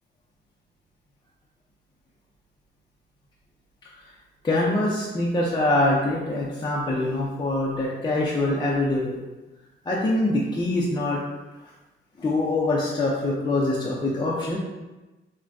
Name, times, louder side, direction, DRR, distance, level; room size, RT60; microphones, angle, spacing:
voice 1, 4.4-9.2 9.8-11.2 12.2-14.6, left 2 dB, 20° left, -5 dB, 0.5 m, -24 dB
4.3 x 2.2 x 2.6 m, 1.1 s
cardioid pair, 90°, 20 cm